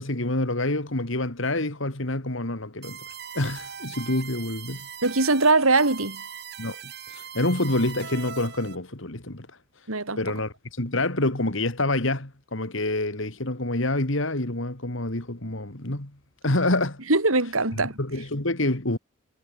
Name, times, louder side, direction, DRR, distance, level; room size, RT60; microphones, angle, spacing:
voice 1, 0.0-3.0 3.3-4.9 6.6-9.5 10.2-16.1 16.4-17.0 18.0-19.0, left 2 dB, 65° left, 2.7 m, -27 dB
sound 1, 2.8-8.8, right 7 dB, 50° right, 8.0 m, -40 dB
voice 2, 5.0-6.2 9.9-10.2 17.1-18.0, right 3 dB, 85° right, 4.1 m, -21 dB
head